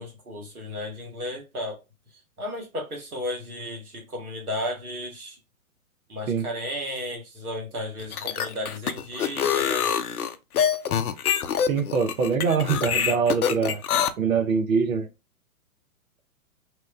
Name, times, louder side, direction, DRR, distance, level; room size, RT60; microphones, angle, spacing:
voice 1, 0.0-1.8 2.4-5.4 6.1-10.0, left 1 dB, 85° right, 1.4 m, -34 dB
sound 1, 8.0-14.1, left 8 dB, 80° left, 0.5 m, -25 dB
voice 2, 11.7-13.8 14.2-15.1, right 5 dB, 70° right, 0.7 m, -23 dB
2.9 x 2.1 x 2.4 m
figure-of-eight pair, 125°, 43 cm